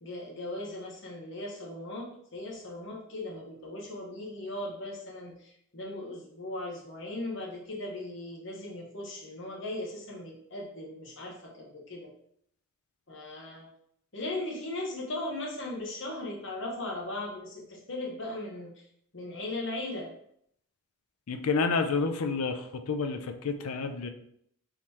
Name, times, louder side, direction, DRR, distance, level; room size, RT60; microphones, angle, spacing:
voice 1, 0.0-12.1 13.1-13.7 14.1-18.8 19.1-20.1, left 2 dB, 55° left, -2 dB, 1.1 m, -38 dB
voice 2, 21.3-24.1, left 4 dB, 90° left, 7 dB, 0.5 m, -29 dB
3.8 x 3.1 x 4.2 m, 0.71 s
head